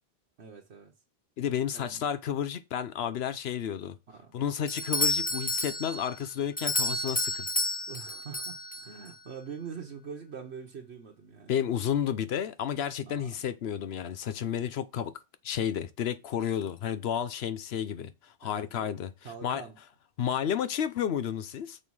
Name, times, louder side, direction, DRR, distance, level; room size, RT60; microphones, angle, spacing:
voice 1, 0.4-0.9 1.7-2.0 4.1-4.3 7.9-11.6 13.0-13.4 18.4-18.9 19.2-19.8, right 6 dB, 90° right, 1.4 m, -44 dB
voice 2, 1.4-4.0 4.3-7.5 11.5-15.1 15.4-19.1 19.4-19.6 20.2-21.8, left 9 dB, 75° left, 1.0 m, -31 dB
Doorbell, 4.7-9.1, left 2 dB, 10° left, 0.4 m, -31 dB
6.7 x 5.5 x 4.7 m
omnidirectional pair, 1.1 m